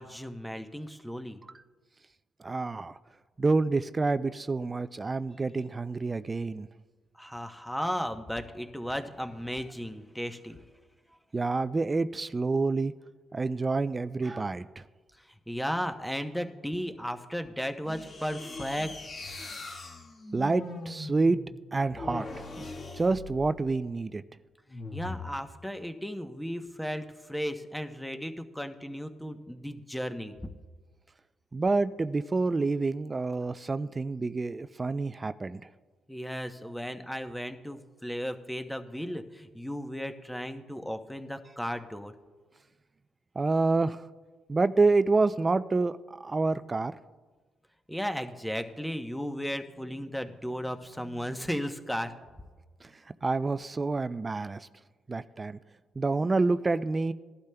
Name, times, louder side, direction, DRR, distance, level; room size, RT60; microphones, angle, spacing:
voice 1, 0.0-1.4 7.2-10.6 15.2-18.9 24.9-30.3 36.1-42.1 47.9-52.1, equal, 5° left, 7 dB, 0.8 m, -35 dB
voice 2, 2.4-3.0 3.4-6.7 11.3-12.9 13.3-14.8 20.3-21.4 21.7-22.3 22.6-22.7 22.9-24.2 31.5-35.6 43.4-44.0 44.5-46.9 52.8-52.9 53.2-54.7 55.1-55.6 56.0-57.1, right 3 dB, 25° right, 13 dB, 0.3 m, -28 dB
sound 1, 17.8-23.8 24.7-25.3, left 2 dB, 55° left, 1.8 m, -41 dB
19.0 x 11.5 x 2.2 m, 1.3 s
cardioid pair, 90°, 0 cm